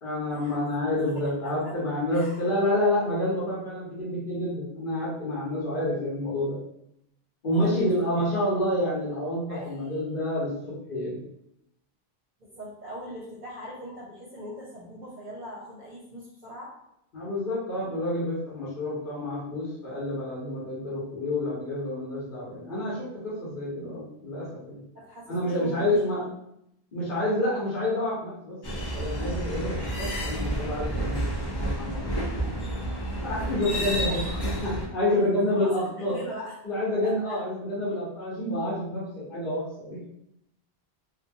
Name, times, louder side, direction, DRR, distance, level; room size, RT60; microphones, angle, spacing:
voice 1, 0.0-6.6 7.4-11.2 17.1-24.8 25.3-26.3 26.9-32.5 33.2-34.2 34.6-36.1 36.6-40.0, left 1 dB, 55° left, -9 dB, 1.1 m, -28 dB
voice 2, 1.1-1.7 2.1-2.4 7.5-7.9 9.5-9.9 12.4-16.7 24.9-26.2 33.6-34.6 35.1-36.6 37.0-37.4, equal, 55° right, -6 dB, 0.7 m, -41 dB
sound 1, 28.6-34.9, right 1 dB, 40° left, 0.3 m, -30 dB
2.8 x 2.3 x 2.6 m, 0.79 s
omnidirectional pair, 1.0 m